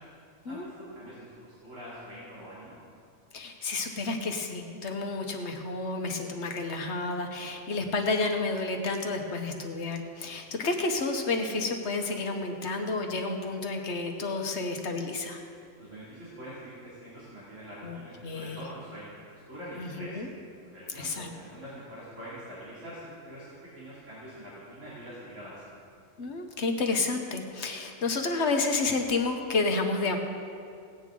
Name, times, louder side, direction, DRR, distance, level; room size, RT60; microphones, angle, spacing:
voice 1, 0.5-1.3 1.6-2.8 15.8-19.1 19.5-20.2 20.6-25.8, equal, 80° right, -11 dB, 3.2 m, -44 dB
voice 2, 3.3-15.4 17.8-18.0 18.2-18.6 19.8-20.3 20.9-21.3 26.2-30.2, left 3 dB, 65° left, 4 dB, 1.3 m, -30 dB
17.5 x 9.0 x 3.8 m, 2.3 s
omnidirectional pair, 1.3 m